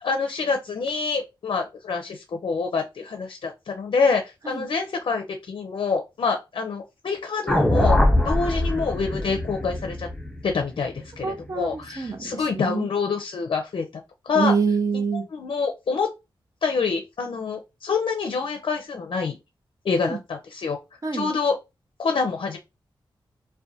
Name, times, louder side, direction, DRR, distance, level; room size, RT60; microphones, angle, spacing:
voice 1, 0.0-10.1 10.4-14.5 15.3-16.1 16.6-19.4 19.8-20.8 21.1-21.6 22.0-22.6, left 4 dB, 65° left, 0.4 m, -26 dB
sound 1, 7.5-11.7, left 1 dB, 5° left, 0.4 m, -23 dB
voice 2, 11.2-12.9 14.3-15.2 20.0-20.2 21.0-21.3, right 5 dB, 40° right, 0.6 m, -26 dB
2.4 x 2.1 x 2.6 m
cardioid pair, 75°, 9 cm